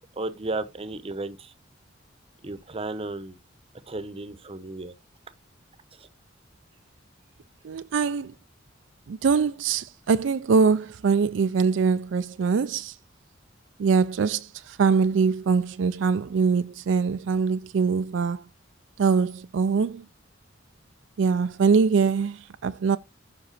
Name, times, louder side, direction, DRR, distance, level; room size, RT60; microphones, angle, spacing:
voice 1, 0.2-1.5 2.4-3.4 3.9-4.9 6.0-6.1, right 2 dB, 30° right, 0.8 m, -34 dB
voice 2, 7.6-8.3 9.1-12.9 13.8-18.4 19.0-20.0 21.2-23.0, right 5 dB, 70° right, 0.4 m, -23 dB
7.4 x 6.0 x 4.2 m
head